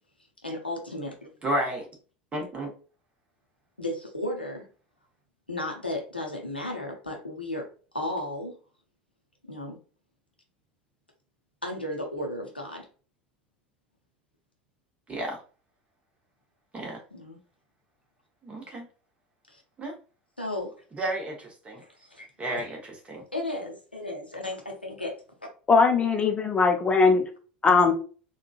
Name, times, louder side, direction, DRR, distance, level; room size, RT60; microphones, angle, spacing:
voice 1, 0.4-1.3 3.8-4.7 5.5-7.7 7.9-8.6 9.4-9.8 11.6-12.9 17.1-17.4 19.5-19.6 20.4-20.7 21.8-22.3 23.3-25.2, left 1 dB, 90° left, 1 dB, 0.7 m, -34 dB
voice 2, 1.4-1.9 2.3-2.7 15.1-15.4 16.7-17.0 18.4-18.9 19.8-19.9 20.9-21.8 22.4-23.2, right 1 dB, 20° right, 1 dB, 1.1 m, -32 dB
voice 3, 25.7-27.2 27.6-27.9, left 4 dB, 20° left, 4 dB, 0.7 m, -20 dB
3.7 x 2.3 x 2.4 m, 0.38 s
figure-of-eight pair, 75°, 5 cm